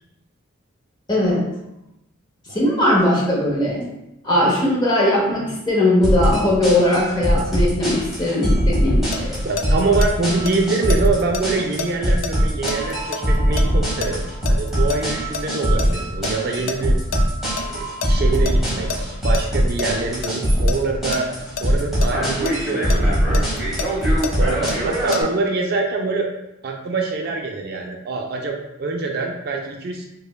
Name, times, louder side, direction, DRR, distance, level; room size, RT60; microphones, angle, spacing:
voice 1, 1.1-1.5 2.5-3.9 4.2-9.4, left 1 dB, 20° left, -4 dB, 0.8 m, -19 dB
sound 1, 6.0-25.2, equal, ahead, 1.1 m, -21 dB
sound 2, 8.9-10.1 10.4-15.0 15.3-17.2 17.6-17.7 18.0-19.4 19.8-20.3 20.7-22.5 22.9-25.2, left 5 dB, 85° left, 0.3 m, -29 dB
voice 2, 9.4-17.0 17.6-21.3 21.6-23.6 24.4-26.3 26.6-30.0, right 3 dB, 50° right, 2 dB, 0.3 m, -25 dB
5.0 x 2.2 x 2.2 m, 0.90 s
head